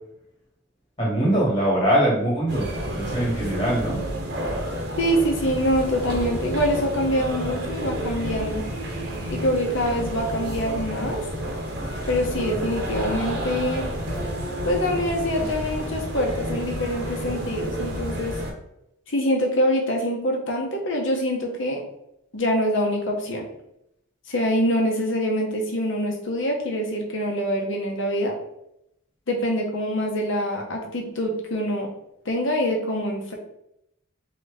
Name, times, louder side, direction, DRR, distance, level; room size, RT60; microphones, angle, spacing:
voice 1, 1.0-2.7 2.9-4.0, right 1 dB, 25° left, -5 dB, 1.5 m, -22 dB
sound 1, 2.5-18.5, right 1 dB, 55° right, 0.9 m, -30 dB
voice 2, 5.0-8.6 9.3-11.2 12.1-13.9 14.6-18.3 19.1-21.8 22.3-23.4 24.3-28.3 29.3-31.9 32.2-33.3, equal, 65° left, 1 dB, 1.0 m, -25 dB
3.9 x 3.0 x 3.5 m, 0.81 s
head